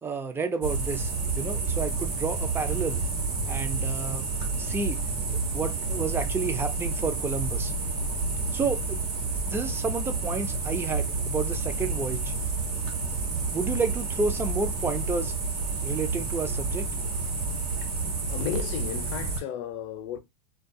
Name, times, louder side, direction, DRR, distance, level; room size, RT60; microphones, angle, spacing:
voice 1, 0.0-3.0 3.5-4.3 4.6-5.0 5.5-7.7 8.5-9.0 9.5-12.3 13.3-15.3 15.8-16.9, right 4 dB, 10° right, 0.4 m, -31 dB
sound 1, 0.6-19.4, right 3 dB, 90° right, 1.1 m, -29 dB
voice 2, 18.3-20.2, left 10 dB, 55° left, 0.5 m, -34 dB
2.3 x 2.3 x 2.6 m
hypercardioid pair, 115°, 20 cm